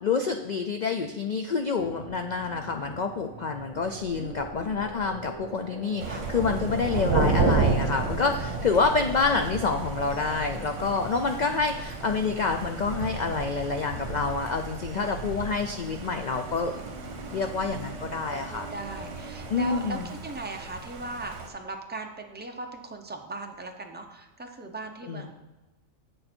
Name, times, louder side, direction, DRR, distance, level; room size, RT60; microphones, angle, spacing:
voice 1, 0.0-16.7 17.3-18.6 19.5-20.1 25.1-25.3, left 4 dB, 85° left, 5 dB, 0.4 m, -28 dB
sound 1, 1.8-19.9, right 2 dB, 35° right, 0.8 m, -45 dB
voice 2, 4.1-4.8 6.0-6.3 8.8-8.9 14.9-15.2 17.7-25.3, right 2 dB, 15° right, 3 dB, 0.4 m, -39 dB
Thunder, 6.0-21.5, right 3 dB, 65° right, 1.3 m, -32 dB
7.9 x 6.6 x 4.4 m, 1.1 s
omnidirectional pair, 1.4 m